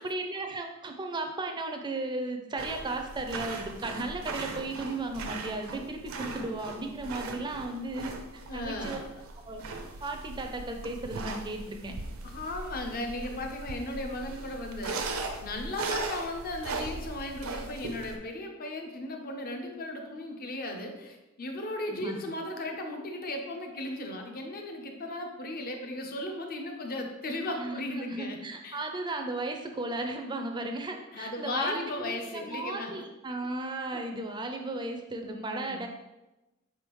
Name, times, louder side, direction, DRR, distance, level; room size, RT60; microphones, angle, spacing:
voice 1, 0.0-9.0 9.4-9.6 10.0-11.9 21.9-22.2 27.6-35.9, right 2 dB, 20° right, 4 dB, 0.4 m, -35 dB
sound 1, 2.6-18.2, right 3 dB, 70° right, 0.5 m, -39 dB
voice 2, 8.5-9.1 12.2-28.4 28.6-28.9 31.1-32.9 33.9-34.0 35.2-35.9, left 1 dB, 45° left, 3 dB, 0.6 m, -36 dB
4.7 x 3.5 x 3.0 m, 1.0 s
head